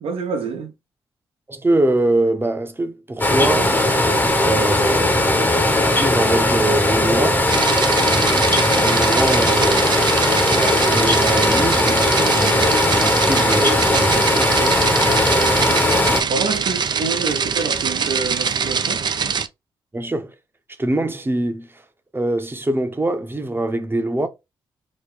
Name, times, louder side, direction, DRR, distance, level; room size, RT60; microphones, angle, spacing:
voice 1, 0.0-0.7 16.3-19.1, right 4 dB, 75° right, 0.9 m, -27 dB
voice 2, 1.5-4.0 4.4-5.6 5.8-7.4 8.6-10.0 10.5-14.5 19.9-20.3 20.8-21.8 22.1-24.3, right 1 dB, 20° right, 0.8 m, -23 dB
sound 1, 3.2-16.2, left 1 dB, 20° left, 0.8 m, -18 dB
sound 2, 7.5-19.5, right 6 dB, 50° right, 0.4 m, -23 dB
3.0 x 2.2 x 3.6 m
supercardioid pair, 50°, 10 cm